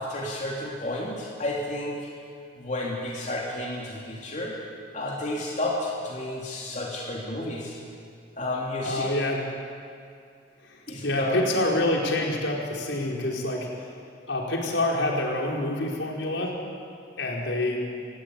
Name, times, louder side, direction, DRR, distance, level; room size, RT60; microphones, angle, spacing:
voice 1, 0.0-2.0 2.6-4.5 4.9-7.8 8.4-9.1 10.9-11.4, left 1 dB, 40° left, -3 dB, 3.4 m, -31 dB
voice 2, 8.8-9.4 10.6-13.9 14.3-16.6 17.2-17.8, left 1 dB, 80° left, -2 dB, 5.0 m, -27 dB
26.5 x 16.0 x 9.8 m, 2.3 s
head